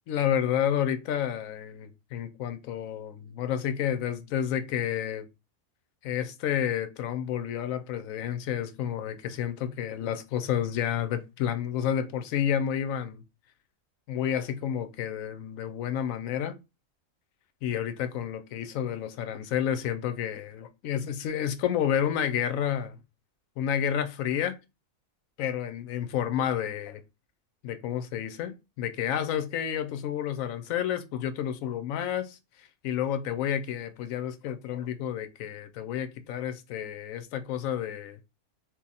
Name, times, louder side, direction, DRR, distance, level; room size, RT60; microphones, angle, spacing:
voice 1, 0.1-5.3 6.0-13.2 14.1-16.6 17.6-23.0 23.6-24.6 25.4-27.0 27.6-38.2, left 9 dB, 85° left, 1.0 m, -30 dB
2.8 x 2.5 x 3.9 m
omnidirectional pair, 1.4 m